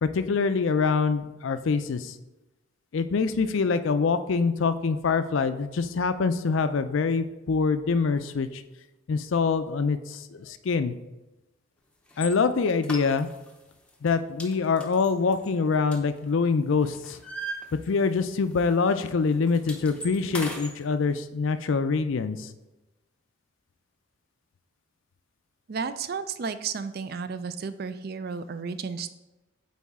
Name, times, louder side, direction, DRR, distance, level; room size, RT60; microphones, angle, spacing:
voice 1, 0.0-2.1 2.9-8.6 9.1-10.9 12.2-13.3 14.0-17.2 17.9-22.5, left 4 dB, 65° left, 11 dB, 0.4 m, -25 dB
sound 1, 12.1-12.3 12.8-13.6 13.9-14.1 14.4-16.5 16.8-18.3 18.5-18.7 19.0-20.7, equal, 5° left, 0.6 m, -38 dB
voice 2, 25.7-29.1, right 5 dB, 45° right, 12 dB, 0.3 m, -33 dB
8.5 x 4.0 x 3.6 m, 1.0 s
head